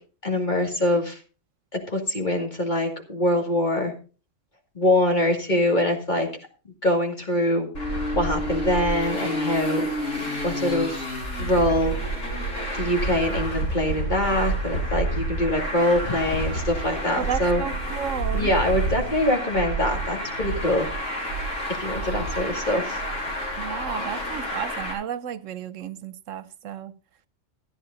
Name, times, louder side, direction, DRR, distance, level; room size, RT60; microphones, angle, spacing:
voice 1, 0.2-1.2 1.9-3.9 4.7-6.3 6.8-7.7 8.1-9.9 10.4-11.0 11.4-11.9 12.7-17.6 18.3-20.9 21.8-23.0, left 1 dB, 35° left, 2.5 m, -24 dB
Traffic noise roadway noise, 7.7-24.9, right 1 dB, 75° left, 3.9 m, -29 dB
voice 2, 17.2-18.5 23.6-26.9, right 9 dB, 80° right, 1.1 m, -32 dB
14.0 x 9.9 x 3.9 m
omnidirectional pair, 1.3 m